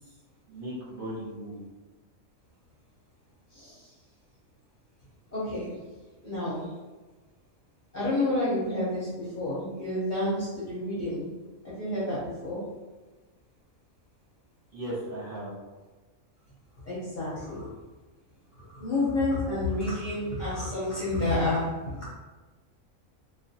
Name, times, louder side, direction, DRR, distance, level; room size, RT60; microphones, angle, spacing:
voice 1, 0.5-1.6 14.7-15.6, right 1 dB, 50° right, -9 dB, 0.8 m, -37 dB
voice 2, 3.5-3.9 5.3-5.8 6.2-6.7 7.9-11.3 11.6-12.7 16.8-17.7 18.7-22.1, left 2 dB, 45° left, -9 dB, 0.6 m, -30 dB
2.3 x 2.2 x 2.6 m, 1.3 s
omnidirectional pair, 1.4 m